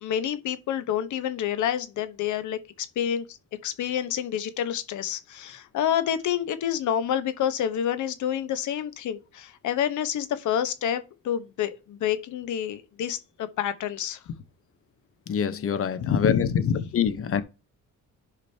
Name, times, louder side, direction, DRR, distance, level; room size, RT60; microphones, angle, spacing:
voice 1, 0.0-3.4 3.6-14.2 16.0-17.0, left 9 dB, 75° left, 1.1 m, -28 dB
voice 2, 15.3-16.5 16.9-17.4, left 7 dB, 45° left, 1.0 m, -25 dB
12.0 x 5.1 x 2.8 m
cardioid pair, 90°, 30 cm